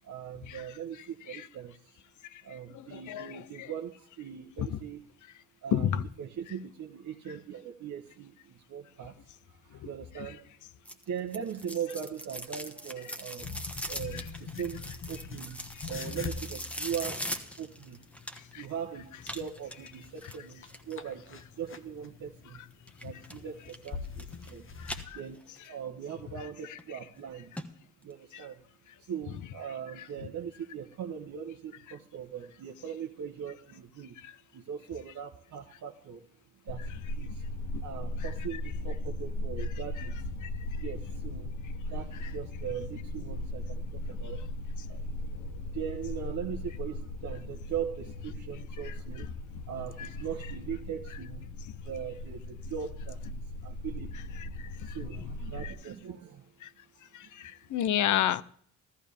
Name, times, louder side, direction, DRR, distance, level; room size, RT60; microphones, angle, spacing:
voice 1, 0.0-2.0 2.4-5.0 5.6-9.2 9.6-10.5 11.1-15.6 15.9-18.0 18.5-22.6 23.0-24.7 25.1-25.4 25.7-27.5 28.0-28.6 29.0-34.2 34.5-36.2 36.6-37.4 37.8-40.3 40.7-41.6 41.9-44.5 44.8-45.0 45.7-49.3 49.7-51.5 51.8-54.3 54.8-56.4, right 8 dB, 55° right, 2 dB, 1.1 m, -40 dB
voice 2, 2.7-3.7 4.6-4.8 5.7-6.0 10.2-10.3 14.1-14.2 18.5-18.6 24.8-25.2 28.3-28.5 40.4-40.5 48.8-48.9 50.0-50.1 54.8-54.9 55.6-55.7 56.6-56.7 57.1-58.4, left 10 dB, 55° left, 18 dB, 0.7 m, -31 dB
sound 1, 10.9-18.7 19.2-21.0 22.9-23.4 23.7-24.5 24.8-25.7 26.1-26.2 26.8-26.9 27.2-27.3 27.6-27.7 28.0-28.1, equal, 5° left, 1.3 m, -41 dB
sound 2, 13.4-25.1, left 5 dB, 35° left, 1.1 m, -44 dB
sound 3, 36.7-55.7, left 1 dB, 75° left, 1.0 m, -38 dB
14.0 x 14.0 x 3.5 m, 0.62 s
supercardioid pair, 75°, 35 cm